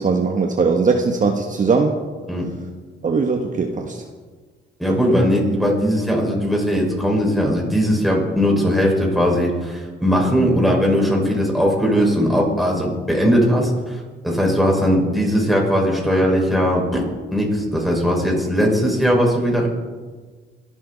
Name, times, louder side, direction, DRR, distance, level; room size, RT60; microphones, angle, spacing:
voice 1, 0.0-2.0 3.0-4.0 4.9-5.2, right 4 dB, 40° right, 3 dB, 1.4 m, -20 dB
voice 2, 4.8-14.0 14.2-17.0 17.3-19.7, equal, ahead, -1 dB, 5.4 m, -19 dB
23.0 x 12.5 x 4.1 m, 1.4 s
cardioid pair, 90°, 20 cm